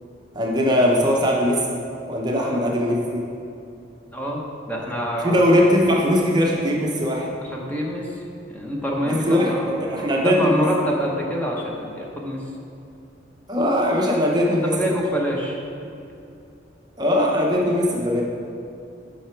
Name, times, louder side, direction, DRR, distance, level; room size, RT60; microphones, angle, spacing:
voice 1, 0.3-1.6 2.1-3.2 5.2-7.3 9.0-10.6 13.5-14.7 17.0-18.2, equal, 20° right, -2 dB, 0.7 m, -20 dB
voice 2, 4.1-4.4 4.7-5.5 7.4-8.1 8.5-12.4 14.5-15.6, equal, 10° left, -2 dB, 0.8 m, -26 dB
8.0 x 5.8 x 4.5 m, 2.6 s
head